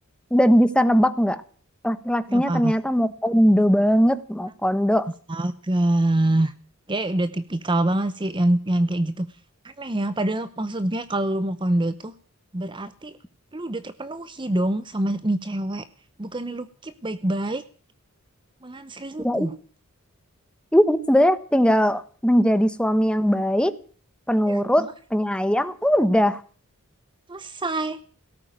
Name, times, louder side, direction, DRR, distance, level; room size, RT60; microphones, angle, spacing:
voice 1, 0.3-1.4 1.8-5.1 19.2-19.5 20.7-23.8 24.3-26.4, equal, 5° left, 12 dB, 1.1 m, -20 dB
voice 2, 2.3-2.7 5.3-6.5 6.9-9.3 9.6-12.1 12.5-13.2 13.5-15.8 16.2-17.6 18.6-19.6 24.5-24.9 27.3-28.0, right 1 dB, 20° right, 13 dB, 0.8 m, -25 dB
17.5 x 9.1 x 9.1 m, 0.43 s
head